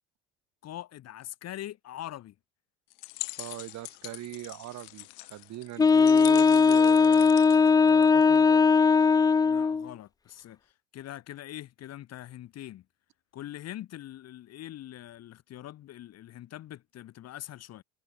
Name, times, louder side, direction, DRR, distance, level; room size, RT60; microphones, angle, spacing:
voice 1, 0.6-2.3 9.4-12.8 13.3-17.8, left 13 dB, 55° left, 1.6 m, -43 dB
sound 1, 2.9-8.5, left 40 dB or more, 85° left, 1.9 m, -43 dB
voice 2, 3.4-7.3 7.8-8.6, right 15 dB, 60° right, 2.0 m, -41 dB
Wind instrument woodwind instrument, 5.8-9.9, left 5 dB, 15° left, 0.3 m, -19 dB
supercardioid pair, 95°, 31 cm